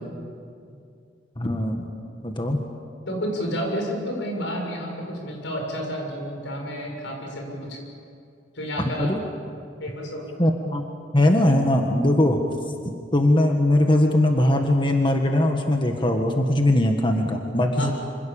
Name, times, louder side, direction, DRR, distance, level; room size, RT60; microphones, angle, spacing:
voice 1, 1.4-1.8 2.2-2.6 9.0-9.2 10.4-10.8 11.1-12.4 13.1-17.9, left 1 dB, 25° left, 3 dB, 1.7 m, -20 dB
voice 2, 3.1-7.8 8.5-9.1 9.8-10.3 17.8-17.9, equal, 85° left, 1 dB, 7.2 m, -30 dB
27.0 x 26.0 x 7.2 m, 2.4 s
head